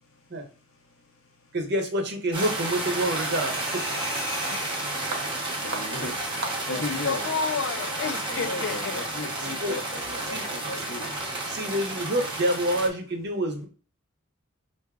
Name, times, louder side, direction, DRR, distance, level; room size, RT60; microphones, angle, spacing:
voice 1, 1.5-3.8 5.1-5.2 5.7-5.8 9.4-9.8 10.3-10.4 10.8-10.9 11.5-13.7, right 1 dB, 55° right, 0.8 m, -27 dB
sound 1, 2.3-12.9, right 2 dB, 25° right, 0.8 m, -31 dB
sound 2, 3.1-5.8, left 2 dB, 15° left, 0.6 m, -40 dB
voice 2, 5.6-6.1 6.7-7.2 8.3-11.1, left 2 dB, 85° left, 0.9 m, -35 dB
voice 3, 6.7-9.1, left 5 dB, 60° left, 0.4 m, -31 dB
4.7 x 2.6 x 2.3 m
head